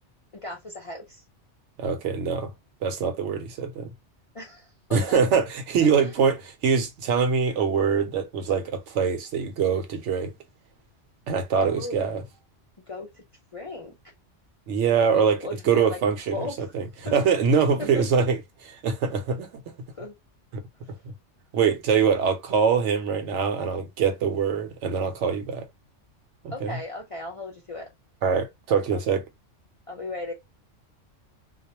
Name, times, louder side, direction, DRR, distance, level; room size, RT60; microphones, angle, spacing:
voice 1, 0.4-1.2 4.3-5.2 6.0-6.2 11.5-12.1 12.9-13.2 13.5-14.1 15.1-16.0 16.3-16.7 17.0-17.1 17.9-18.2 19.9-20.1 26.5-27.9 28.9-29.0 29.9-30.3, left 3 dB, 45° left, 0.4 m, -37 dB
voice 2, 1.8-2.5 2.8-3.9 4.9-10.3 11.3-12.2 14.7-15.4 15.7-16.5 16.7-18.4 18.7-19.5 21.5-25.6 26.4-26.8 28.2-29.2, right 6 dB, 75° right, 0.9 m, -23 dB
2.4 x 2.1 x 2.8 m
omnidirectional pair, 1.3 m